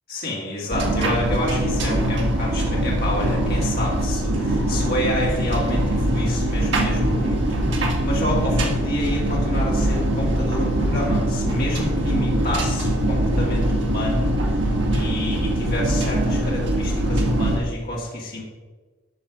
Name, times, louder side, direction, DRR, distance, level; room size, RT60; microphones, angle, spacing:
voice 1, 0.1-18.4, left 1 dB, 45° left, -3 dB, 2.0 m, -29 dB
sound 1, 0.7-17.6, right 1 dB, 55° right, 1.6 m, -22 dB
11.5 x 5.8 x 4.9 m, 1.4 s
head